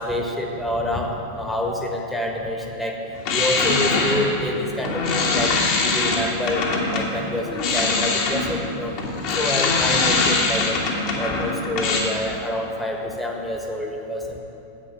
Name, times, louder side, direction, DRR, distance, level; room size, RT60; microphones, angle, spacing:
voice 1, 0.0-3.0 3.3-9.0 9.4-10.8 11.2-14.4, left 1 dB, 5° left, 1 dB, 1.4 m, -27 dB
sound 1, 3.2-7.1 7.5-12.0, left 3 dB, 45° left, 1.8 m, -22 dB
10.0 x 8.3 x 6.1 m, 2.9 s
figure-of-eight pair, 90°, 0 cm